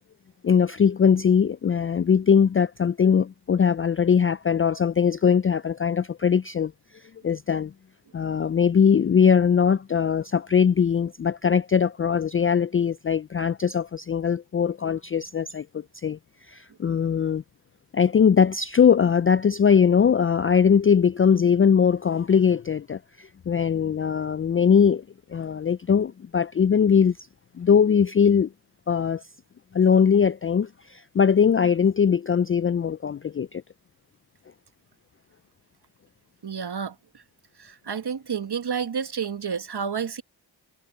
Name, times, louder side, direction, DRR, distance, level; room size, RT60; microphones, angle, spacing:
voice 1, 0.4-7.7 8.1-16.2 16.5-17.4 17.9-25.0 25.3-27.2 27.6-28.5 28.9-29.2 29.7-33.6, left 7 dB, 30° left, 0.4 m, -21 dB
voice 2, 36.4-37.2 37.6-40.2, right 6 dB, 55° right, 1.5 m, -30 dB
cardioid pair, 45°, 47 cm